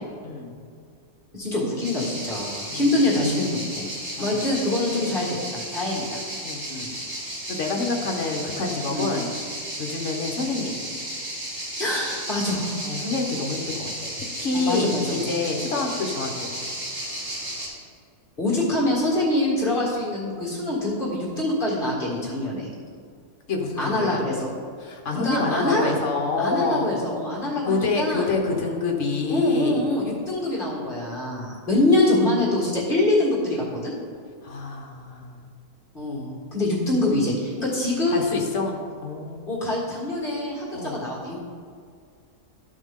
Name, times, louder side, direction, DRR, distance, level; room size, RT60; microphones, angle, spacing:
voice 1, 0.2-0.6 2.7-2.8 4.2-4.4 5.0-5.2 6.4-6.6 7.5-9.3 9.8-10.8 12.8-14.1 14.4-16.6 23.5-24.3 24.8-26.9 27.7-29.8 34.4-35.4 38.1-39.6 40.7-41.0, left 3 dB, 55° left, 2 dB, 1.3 m, -27 dB
voice 2, 1.3-3.9 4.2-6.2 6.7-6.9 8.9-9.1 11.8-12.8 14.5-15.2 18.4-22.7 23.8-24.5 25.2-25.9 26.4-28.3 29.3-33.9 35.9-38.4 39.5-41.4, left 2 dB, 35° left, -5 dB, 2.0 m, -24 dB
sound 1, 1.8-17.7, right 1 dB, 80° right, 2.8 m, -34 dB
13.0 x 5.2 x 3.7 m, 2.1 s
omnidirectional pair, 1.6 m